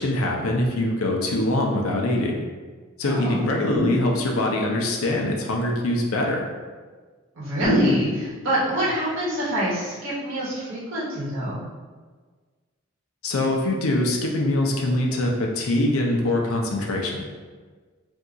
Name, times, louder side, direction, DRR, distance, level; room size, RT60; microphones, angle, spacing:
voice 1, 0.0-2.4 3.0-6.5 13.2-17.2, left 1 dB, 85° left, 0 dB, 0.5 m, -23 dB
voice 2, 3.0-3.5 7.3-11.6, right 1 dB, 70° right, -8 dB, 1.1 m, -26 dB
sound 1, 3.7-4.6 7.6-8.5, left 1 dB, 35° left, 1.2 m, -25 dB
2.7 x 2.3 x 3.7 m, 1.5 s
head